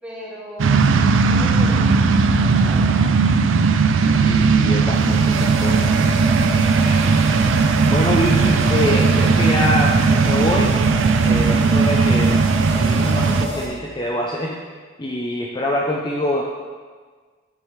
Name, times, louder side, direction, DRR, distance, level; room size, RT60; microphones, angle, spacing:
voice 1, 0.0-3.1, equal, 5° right, -8 dB, 2.4 m, -37 dB
sound 1, 0.6-13.5, right 4 dB, 80° right, 0.4 m, -17 dB
voice 2, 4.1-5.9 6.8-7.2 7.9-10.8 11.2-12.4 12.8-14.6 15.0-16.4, left 1 dB, 25° left, -2 dB, 0.6 m, -25 dB
sound 2, 4.9-13.7, equal, 60° right, 2.6 m, -30 dB
9.5 x 7.6 x 3.3 m, 1.5 s
head